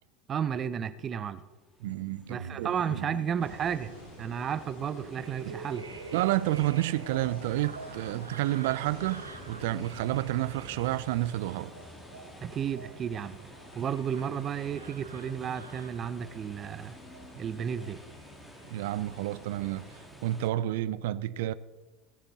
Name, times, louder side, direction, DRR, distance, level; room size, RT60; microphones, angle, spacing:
voice 1, 0.3-1.4 2.3-3.9 4.2-5.9 12.4-13.5 13.7-17.0 17.4-18.0, right 8 dB, 35° right, 0.7 m, -33 dB
sound 1, 1.5-20.5, equal, 10° left, 1.7 m, -52 dB
voice 2, 1.8-3.1 5.5-5.6 6.1-11.7 18.7-19.9 20.2-21.5, right 15 dB, 65° right, 0.5 m, -30 dB
sound 2, 1.9-19.6 19.9-20.8, right 4 dB, 85° right, 0.8 m, -47 dB
sound 3, 3.4-20.0, left 1 dB, 85° left, 4.2 m, -50 dB
19.5 x 7.1 x 4.1 m
figure-of-eight pair, 80°, 0 cm